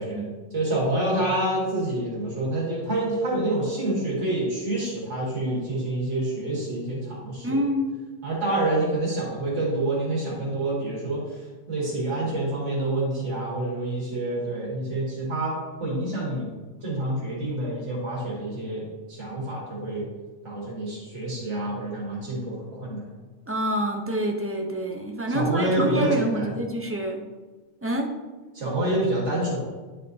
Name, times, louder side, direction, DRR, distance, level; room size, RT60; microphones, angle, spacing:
voice 1, 0.0-7.6 8.2-11.4 11.7-16.5 16.8-20.1 20.4-23.0 25.3-26.5 28.5-29.6, right 1 dB, 80° right, -5 dB, 2.2 m, -27 dB
voice 2, 7.4-7.9 23.5-27.2 27.8-28.1, right 1 dB, 15° right, 2 dB, 0.4 m, -27 dB
10.0 x 4.3 x 2.7 m, 1.3 s
omnidirectional pair, 1.2 m